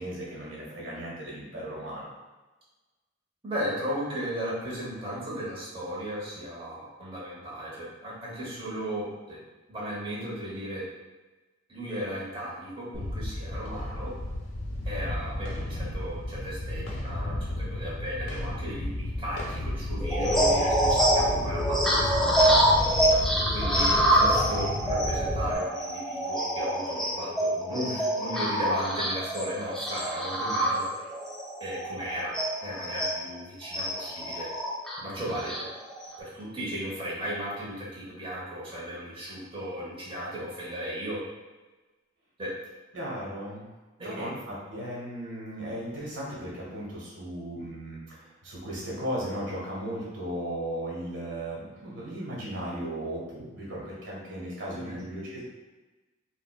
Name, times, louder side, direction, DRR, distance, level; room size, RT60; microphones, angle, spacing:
voice 1, 0.0-2.1 35.0-35.3 42.9-43.7 44.0-55.4, right 1 dB, 65° right, -5 dB, 1.5 m, -36 dB
voice 2, 3.4-9.4 9.7-10.9 11.7-14.1 14.8-22.6 23.5-30.8 31.6-32.4 32.6-34.5 35.0-35.7 36.2-41.2 42.4-42.5 44.0-44.3 54.7-55.0, equal, 25° right, -7 dB, 1.0 m, -36 dB
sound 1, 12.9-25.5, left 1 dB, 75° left, 0.7 m, -33 dB
sound 2, 20.0-33.2 33.7-36.1, right 1 dB, ahead, 0.4 m, -26 dB
4.8 x 2.2 x 2.3 m, 1.2 s
head